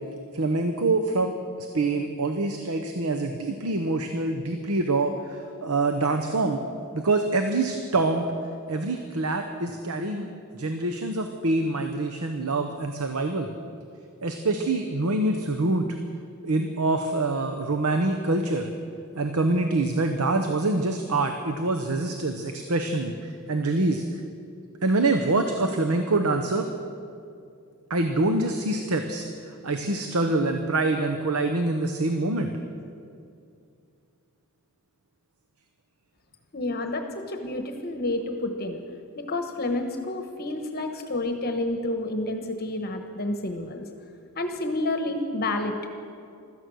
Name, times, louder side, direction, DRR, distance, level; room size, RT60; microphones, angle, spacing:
voice 1, 0.3-6.6 6.9-8.3 8.7-13.5 14.2-15.9 16.4-18.7 19.1-24.0 24.8-26.7 27.9-29.2 29.6-32.5, right 2 dB, 75° right, 6 dB, 0.9 m, -25 dB
voice 2, 36.5-38.8 39.2-43.8 44.3-45.7, left 2 dB, 45° left, 6 dB, 1.1 m, -29 dB
16.0 x 13.0 x 6.3 m, 2.4 s
head